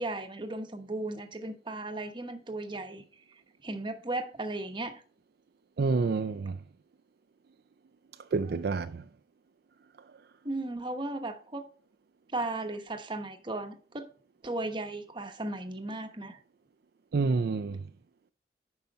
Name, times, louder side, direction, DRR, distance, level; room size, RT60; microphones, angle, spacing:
voice 1, 0.0-3.0 3.6-5.0 10.4-11.6 12.3-14.0 14.4-16.4, right 2 dB, 30° right, 1.0 m, -36 dB
voice 2, 5.8-6.6 8.3-9.0 17.1-17.8, right 4 dB, 60° right, 0.4 m, -28 dB
9.4 x 5.7 x 4.0 m
head